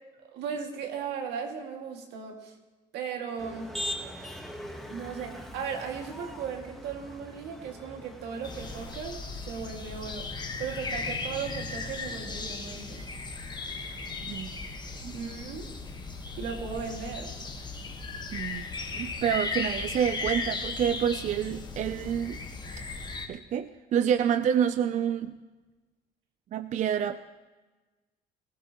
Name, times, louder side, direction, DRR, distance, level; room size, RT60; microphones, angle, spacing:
voice 1, 0.3-2.5 2.9-3.7 4.9-9.2 9.5-10.3 10.6-13.1 15.1-15.7 16.4-17.4, right 6 dB, 85° right, 2 dB, 2.1 m, -36 dB
Motor vehicle (road), 3.4-9.0, left 1 dB, ahead, 1.3 m, -41 dB
sound 1, 8.4-23.3, left 3 dB, 25° left, 1.3 m, -36 dB
voice 2, 18.3-18.6 19.0-22.4 23.3-25.4 26.5-27.2, right 9 dB, 45° right, 12 dB, 0.4 m, -28 dB
19.5 x 14.5 x 3.0 m, 1.2 s
cardioid pair, 110°, 17 cm